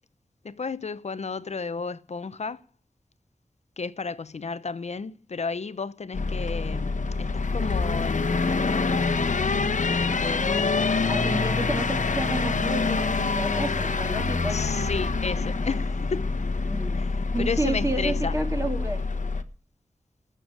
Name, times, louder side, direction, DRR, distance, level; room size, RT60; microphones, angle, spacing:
voice 1, 0.4-2.6 3.8-9.0 10.2-10.9 14.5-16.3 17.0-18.4, left 4 dB, 60° left, 0.7 m, -33 dB
sound 1, 6.1-19.4, left 4 dB, 80° left, 1.1 m, -26 dB
voice 2, 11.1-14.6 16.7-17.0 17.3-19.0, right 2 dB, 25° right, 2.6 m, -30 dB
13.5 x 6.9 x 8.8 m
wide cardioid pair, 75°, 13 cm